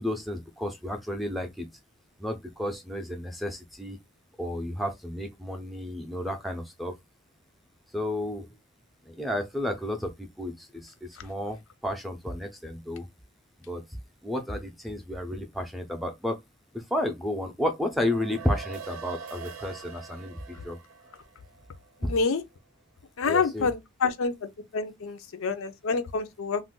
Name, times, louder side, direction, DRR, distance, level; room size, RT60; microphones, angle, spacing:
voice 1, 0.0-1.7 2.2-4.0 4.4-6.9 7.9-8.5 9.1-13.1 13.7-13.8 14.2-16.4 16.7-20.8 23.3-23.7, left 1 dB, ahead, 0.5 m, -32 dB
sound 1, 17.9-22.4, right 6 dB, 80° right, 0.4 m, -44 dB
voice 2, 22.0-22.4 23.2-26.6, left 4 dB, 85° left, 0.5 m, -28 dB
2.5 x 2.2 x 3.6 m
head